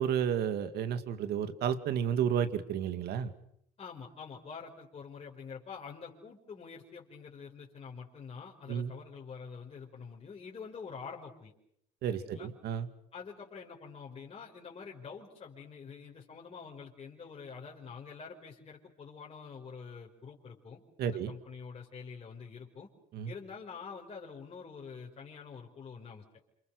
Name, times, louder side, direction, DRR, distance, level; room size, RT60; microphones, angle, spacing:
voice 1, 0.0-3.3 8.7-8.9 12.0-12.9 21.0-21.3 23.1-23.3, right 8 dB, 75° right, 10 dB, 2.2 m, -31 dB
voice 2, 3.8-11.5 12.1-12.5 13.1-22.9 23.3-26.2, left 5 dB, 35° left, -3 dB, 5.1 m, -46 dB
28.0 x 28.0 x 6.6 m, 0.70 s
cardioid pair, 110°, 17 cm